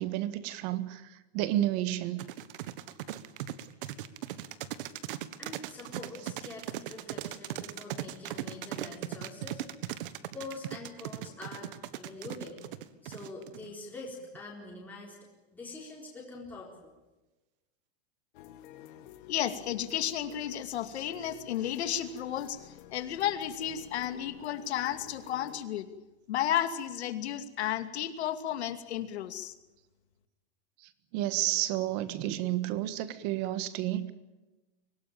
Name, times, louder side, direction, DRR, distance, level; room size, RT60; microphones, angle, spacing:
voice 1, 0.0-2.2 30.8-34.1, right 14 dB, 40° right, 13 dB, 1.6 m, -31 dB
sound 1, 2.2-13.7, right 13 dB, 55° right, 1.5 m, -38 dB
voice 2, 5.4-9.6 10.3-12.6 13.0-15.2 15.5-16.9, left 3 dB, 5° left, -4 dB, 4.1 m, -45 dB
sound 2, 18.3-25.6, left 13 dB, 50° left, 1.9 m, -52 dB
voice 3, 19.3-25.9 26.3-29.5, left 11 dB, 80° left, 9 dB, 2.6 m, -33 dB
24.5 x 18.0 x 8.9 m, 1.1 s
supercardioid pair, 175°, 32 cm